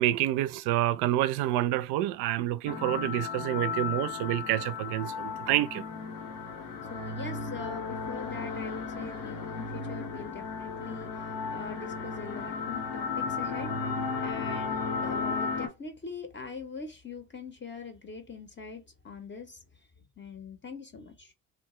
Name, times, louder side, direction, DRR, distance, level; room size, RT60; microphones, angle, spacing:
voice 1, 0.0-5.8, right 14 dB, 60° right, 0.5 m, -28 dB
sound 1, 2.7-15.7, left 5 dB, 85° left, 0.7 m, -34 dB
voice 2, 6.8-13.7 14.2-19.6 20.2-21.3, left 4 dB, 25° left, 0.6 m, -42 dB
2.9 x 2.1 x 3.0 m
hypercardioid pair, 45°, 46 cm